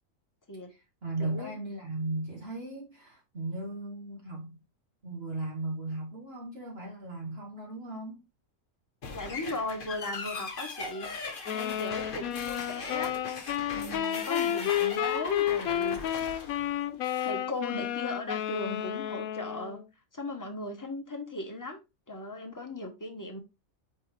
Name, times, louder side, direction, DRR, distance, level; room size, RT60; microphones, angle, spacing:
voice 1, 0.7-4.5 5.0-8.2, right 2 dB, 50° right, 1.6 m, -37 dB
voice 2, 1.2-1.5 9.1-11.1 11.5-13.1 13.4-16.2 17.2-19.8 20.1-21.8 22.1-23.4, left 2 dB, 15° left, 1.0 m, -38 dB
sound 1, 9.0-17.4, left 4 dB, 40° left, 1.1 m, -40 dB
sound 2, 11.5-19.8, left 11 dB, 85° left, 1.1 m, -31 dB
8.6 x 3.5 x 3.3 m
omnidirectional pair, 1.4 m